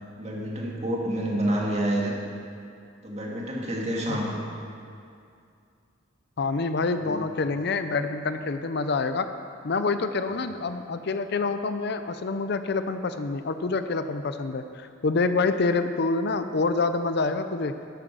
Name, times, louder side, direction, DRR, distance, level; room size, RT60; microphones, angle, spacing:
voice 1, 0.2-2.1 3.0-4.4 6.9-7.2, right 1 dB, 35° right, -2 dB, 2.1 m, -28 dB
voice 2, 6.4-9.3 9.6-17.7, left 3 dB, 55° left, 10 dB, 0.5 m, -27 dB
13.0 x 9.1 x 6.1 m, 2.4 s
head